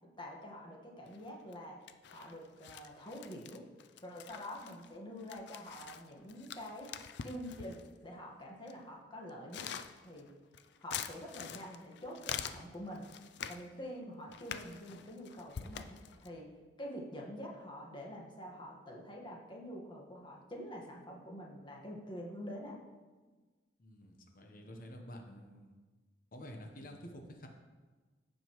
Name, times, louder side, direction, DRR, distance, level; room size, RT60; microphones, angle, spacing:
voice 1, 0.2-1.8 2.1-3.6 4.0-6.9 7.2-9.7 10.0-10.3 10.8-13.0 13.5-16.5 16.8-22.7, equal, 25° left, -2 dB, 1.4 m, -46 dB
sound 1, 1.0-1.6 1.9-8.0 8.7-8.8 9.3-13.7 14.3-16.3, left 8 dB, 65° left, 0.4 m, -46 dB
voice 2, 23.8-25.7 26.3-27.5, equal, 50° left, 3 dB, 1.0 m, -49 dB
15.0 x 5.2 x 3.1 m, 1.3 s
head